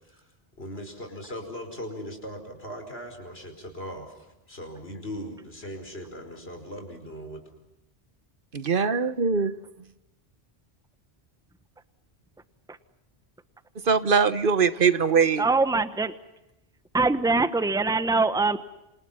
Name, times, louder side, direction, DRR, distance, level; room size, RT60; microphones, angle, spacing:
voice 1, 0.6-7.4, equal, 65° left, 5 dB, 5.4 m, -39 dB
voice 2, 8.5-9.5 13.9-15.4, right 5 dB, 55° right, 13 dB, 1.3 m, -22 dB
voice 3, 15.4-16.1 16.9-18.6, right 3 dB, 5° right, 12 dB, 1.1 m, -23 dB
28.5 x 28.0 x 5.7 m, 0.91 s
omnidirectional pair, 1.1 m